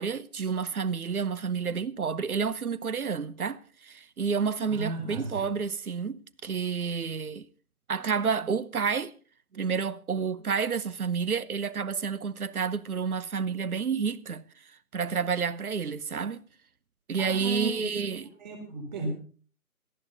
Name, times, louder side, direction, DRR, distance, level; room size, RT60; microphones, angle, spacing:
voice 1, 0.0-7.5 7.9-9.1 9.5-14.4 14.9-16.4 17.1-18.2, right 6 dB, 70° right, 1.0 m, -30 dB
voice 2, 4.7-5.5 17.2-18.0 18.4-19.1, right 3 dB, 30° right, 3.9 m, -35 dB
18.0 x 13.5 x 4.0 m
figure-of-eight pair, 165°, 45 cm